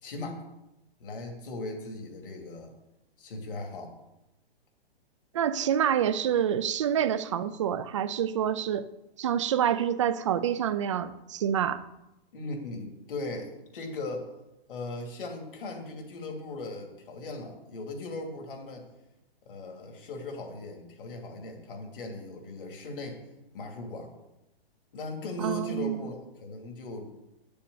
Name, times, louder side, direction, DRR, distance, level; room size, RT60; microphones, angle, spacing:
voice 1, 0.0-0.4 1.0-2.7 3.2-3.9 12.3-14.3 14.7-18.9 19.4-23.2 23.5-24.1 24.9-27.1, left 2 dB, 60° left, 2.7 m, -38 dB
voice 2, 5.3-8.9 9.2-11.8 25.4-26.1, right 9 dB, 30° right, 0.5 m, -27 dB
8.8 x 6.9 x 8.2 m
hypercardioid pair, 165°, 31 cm